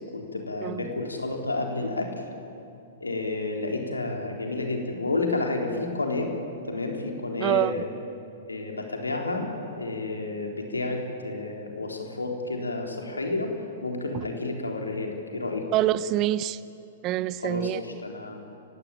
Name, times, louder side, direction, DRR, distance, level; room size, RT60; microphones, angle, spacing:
voice 1, 0.1-2.1 3.0-6.3 6.7-7.9 8.5-13.5 13.8-15.6 17.4-18.6, left 2 dB, 85° left, 2 dB, 3.8 m, -30 dB
voice 2, 7.4-7.7 15.7-16.6 17.0-17.8, right 14 dB, 35° right, 18 dB, 0.7 m, -25 dB
30.0 x 16.5 x 9.0 m, 2.7 s
figure-of-eight pair, 110°, 0 cm